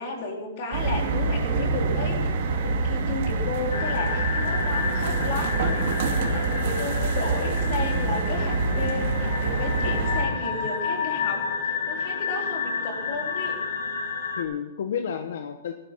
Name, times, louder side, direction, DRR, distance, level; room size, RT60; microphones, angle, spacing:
voice 1, 0.0-5.7 6.2-11.5 11.9-13.6, left 3 dB, 35° left, 1 dB, 3.8 m, -33 dB
sound 1, 0.7-10.2, right 3 dB, 45° right, 2.7 m, -26 dB
sound 2, 3.7-14.4, left 5 dB, 85° left, 6.2 m, -30 dB
voice 2, 10.3-10.7 14.3-15.7, left 8 dB, 65° left, 6 dB, 1.3 m, -31 dB
18.5 x 12.0 x 5.9 m, 0.98 s
hypercardioid pair, 175°, 0 cm